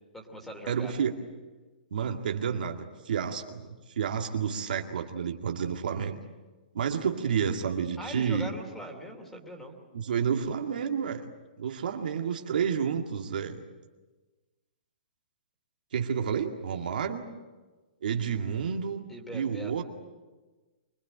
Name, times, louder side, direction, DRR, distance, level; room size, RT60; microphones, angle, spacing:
voice 1, 0.1-0.9 8.0-9.8 19.1-19.7, equal, 5° left, 3 dB, 2.9 m, -41 dB
voice 2, 0.7-1.1 1.9-6.2 6.7-8.5 9.9-11.2 11.6-13.6 15.9-17.3 18.0-19.0 19.3-19.8, right 7 dB, 65° right, 4 dB, 2.2 m, -30 dB
24.5 x 20.0 x 8.9 m, 1.2 s
hypercardioid pair, 165°, 5 cm